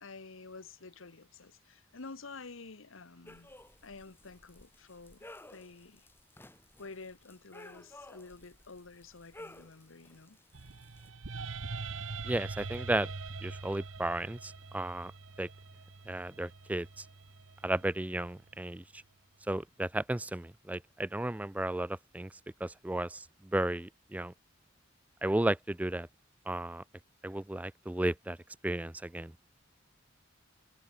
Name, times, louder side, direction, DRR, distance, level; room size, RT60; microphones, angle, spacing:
voice 1, 0.0-3.5 3.8-6.1 6.8-10.4, left 3 dB, 85° left, 1.2 m, -50 dB
sound 1, 3.3-11.1, left 1 dB, 10° left, 2.0 m, -55 dB
sound 2, 10.5-18.7, right 4 dB, 80° right, 1.1 m, -43 dB
voice 2, 12.2-13.1 13.4-15.1 15.4-15.5 16.1-17.1 17.6-19.0 19.5-22.3 22.6-24.3 25.2-26.1 26.5-26.8 27.2-28.4 28.6-29.3, right 1 dB, 10° right, 0.3 m, -34 dB
head